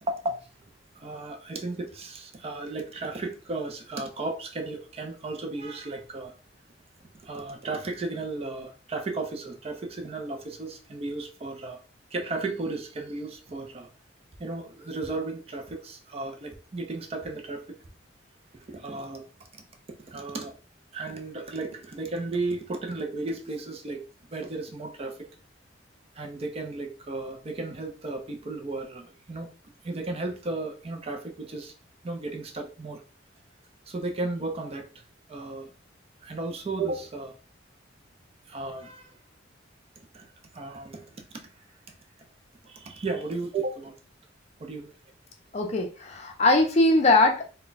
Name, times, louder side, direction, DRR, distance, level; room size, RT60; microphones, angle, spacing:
voice 1, 0.0-0.5 0.9-6.3 7.2-11.8 12.1-13.9 14.4-17.8 18.5-19.2 20.1-20.6 20.9-25.2 26.1-29.5 29.8-31.7 32.0-33.0 33.9-35.0 35.3-35.7 36.2-37.3 38.5-39.1 40.1-41.4 42.6-44.0 44.6-44.9, right 3 dB, 30° right, 5 dB, 0.4 m, -34 dB
voice 2, 45.5-47.4, left 2 dB, 35° left, 3 dB, 0.5 m, -21 dB
2.2 x 2.1 x 3.8 m, 0.35 s
head